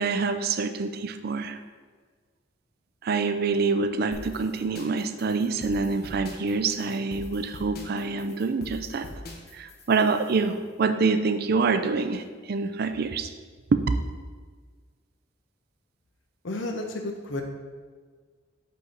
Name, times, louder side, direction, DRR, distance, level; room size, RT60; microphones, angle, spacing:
voice 1, 0.0-1.6 3.0-9.1 9.5-12.2 12.5-13.3 13.7-13.8, right 4 dB, 55° right, 9 dB, 0.4 m, -26 dB
sound 1, 4.1-10.5, left 1 dB, 55° left, 0.9 m, -43 dB
voice 2, 16.4-17.4, left 2 dB, 85° left, 4 dB, 0.8 m, -32 dB
5.7 x 5.5 x 3.9 m, 1.5 s
head